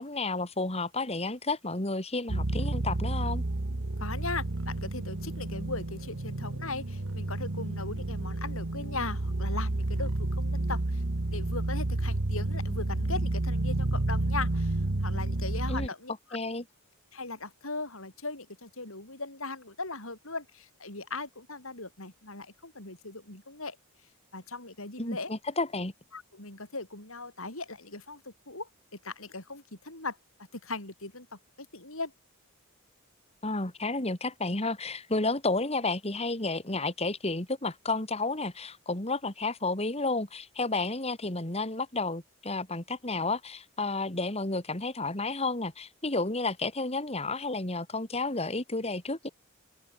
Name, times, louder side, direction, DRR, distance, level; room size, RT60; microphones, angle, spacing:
voice 1, 0.0-3.4 15.7-15.9 16.3-16.6 25.0-25.9 33.4-49.3, left 3 dB, 30° left, 2.7 m, -31 dB
sound 1, 2.3-15.9, right 2 dB, 65° right, 1.3 m, -30 dB
voice 2, 3.7-11.0 11.3-16.1 17.1-23.8 24.3-25.3 26.1-28.7 29.0-30.2 30.5-32.1, left 3 dB, 65° left, 7.5 m, -39 dB
head